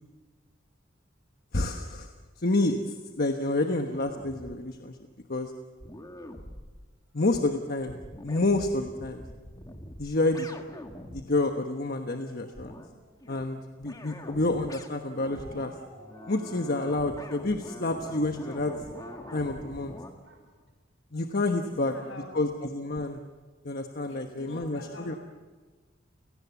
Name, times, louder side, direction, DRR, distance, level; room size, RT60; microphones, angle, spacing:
voice 1, 1.5-2.1 2.4-5.0 5.3-5.5 7.1-9.2 10.0-10.5 11.1-12.8 13.3-15.7 16.3-18.7 19.3-19.9 21.1-21.9 22.3-23.2 23.6-25.1, left 2 dB, 50° left, 5 dB, 1.2 m, -29 dB
sound 1, 3.9-4.6 5.3-5.4 5.8-6.9 7.4-7.5 7.8-11.3 12.5-12.9 13.2-13.4 13.8-20.1, left 1 dB, 20° left, 1.6 m, -44 dB
Dog, 11.4-13.5 15.2-16.9 18.6-20.7 21.1-21.2, right 1 dB, 70° right, 5.8 m, -52 dB
voice 2, 21.6-22.3 24.1-25.2, left 2 dB, 70° left, 4 dB, 6.1 m, -45 dB
29.5 x 18.0 x 7.3 m, 1.4 s
head